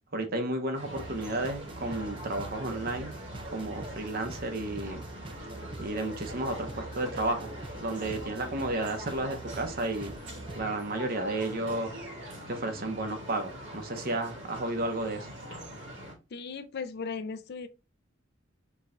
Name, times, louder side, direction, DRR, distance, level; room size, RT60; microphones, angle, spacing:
voice 1, 0.1-3.1 3.5-5.0 5.8-7.5 7.8-10.1 10.6-11.9 12.5-15.3, right 2 dB, 50° right, 0.9 m, -32 dB
sound 1, 0.7-16.1, equal, 65° right, 1.9 m, -43 dB
sound 2, 0.9-10.6, right 2 dB, 25° right, 0.5 m, -45 dB
voice 2, 16.3-17.7, left 5 dB, 55° left, 0.4 m, -37 dB
4.5 x 2.3 x 3.7 m
head